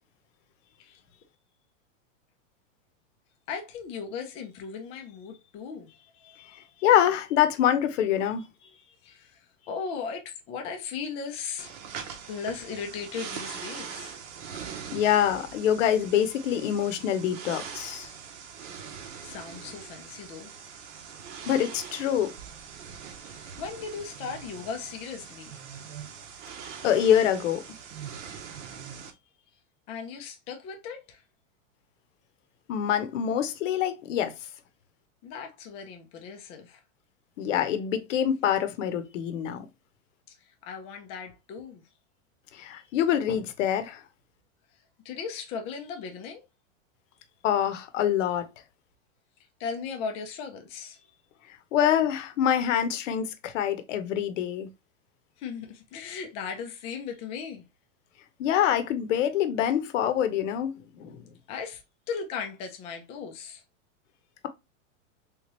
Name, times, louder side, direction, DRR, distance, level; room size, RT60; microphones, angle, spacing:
voice 1, 3.5-6.8 8.6-11.7 12.3-14.2 19.2-20.5 23.2-25.6 29.9-31.2 35.2-36.8 40.5-41.8 42.6-43.0 45.0-46.4 49.6-51.0 55.4-57.6 61.5-61.8 62.1-63.6, left 6 dB, 15° left, 0.4 m, -37 dB
voice 2, 6.8-8.4 14.9-18.1 21.4-22.4 26.8-27.6 32.7-34.3 37.4-39.7 42.5-44.0 47.4-48.5 51.7-54.7 58.4-61.2, left 10 dB, 65° left, 0.8 m, -25 dB
sound 1, 11.6-29.1, right 7 dB, 65° right, 1.0 m, -42 dB
3.6 x 3.0 x 3.0 m
supercardioid pair, 155°, 39 cm